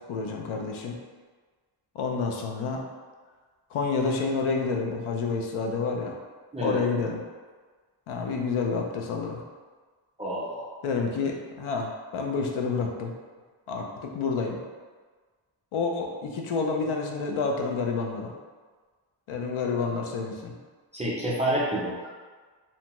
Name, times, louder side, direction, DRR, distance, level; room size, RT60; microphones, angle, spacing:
voice 1, 0.1-1.0 1.9-2.8 3.7-6.2 6.6-7.2 8.1-9.4 10.8-13.1 13.7-14.6 15.7-18.3 19.3-20.5, left 4 dB, 90° left, 1 dB, 0.5 m, -29 dB
voice 2, 10.2-10.7 20.9-22.1, right 1 dB, 15° right, -7 dB, 0.3 m, -28 dB
2.7 x 2.2 x 2.9 m, 1.4 s
wide cardioid pair, 170°, 48 cm